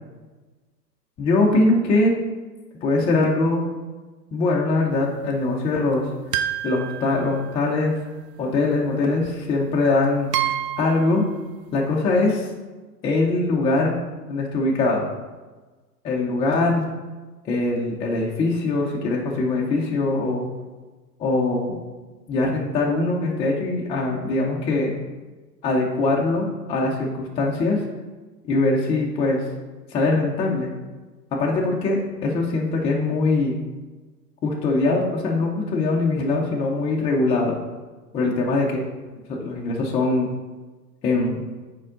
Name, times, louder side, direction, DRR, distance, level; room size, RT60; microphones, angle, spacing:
voice 1, 1.2-2.2 2.8-3.7 4.3-6.1 6.6-8.0 8.4-11.2 11.7-12.5 13.0-14.0 14.3-15.0 16.0-16.9 17.5-20.5 21.2-21.8 22.3-24.9 25.6-27.8 28.4-29.4 29.9-30.7 31.3-33.6 34.4-37.6 38.1-38.8 39.3-40.3 41.0-41.4, left 2 dB, 10° left, -2 dB, 0.4 m, -22 dB
sound 1, 6.3-7.8 9.2-9.3 10.3-11.2, right 11 dB, 75° right, 0.6 m, -28 dB
6.3 x 4.5 x 3.7 m, 1.3 s
hypercardioid pair, 105°, 49 cm